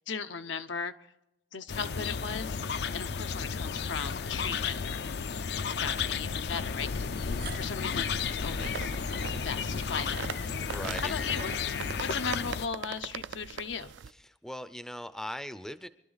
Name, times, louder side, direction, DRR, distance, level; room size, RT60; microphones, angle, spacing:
voice 1, 0.1-0.9 1.5-5.0 5.5-8.9 9.4-10.4 11.1-11.7 12.0-13.9, left 6 dB, 80° left, 9 dB, 0.8 m, -37 dB
sound 1, 1.7-12.7, left 5 dB, 60° left, 0.5 m, -33 dB
sound 2, 4.7-4.8 6.0-6.1 7.0-13.0, right 6 dB, 55° right, 0.8 m, -53 dB
sound 3, 8.6-14.1, right 7 dB, 80° right, 0.4 m, -41 dB
voice 2, 10.7-11.1 14.1-15.9, equal, 5° left, 12 dB, 0.5 m, -39 dB
24.0 x 12.0 x 4.0 m, 0.91 s
head